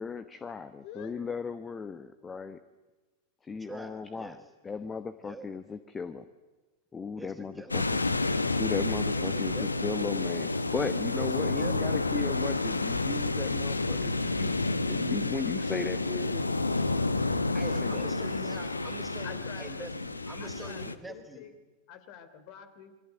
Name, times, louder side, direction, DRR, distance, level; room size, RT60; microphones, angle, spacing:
voice 1, 0.0-2.6 3.4-4.4 4.6-6.2 6.9-8.0 8.6-14.6 14.9-16.5 17.8-18.5, left 5 dB, 15° left, 12 dB, 1.2 m, -36 dB
voice 2, 0.8-1.2 19.2-19.9 20.4-21.5 21.9-22.9, left 9 dB, 45° left, 10 dB, 3.4 m, -46 dB
voice 3, 3.6-4.4 5.2-5.5 7.2-7.9 9.1-9.8 11.2-11.9 17.5-21.4, right 2 dB, 10° right, 5 dB, 3.9 m, -45 dB
sound 1, 7.7-20.9, left 2 dB, 80° left, 1.2 m, -30 dB
27.5 x 23.0 x 9.2 m, 1.2 s
figure-of-eight pair, 90°, 0 cm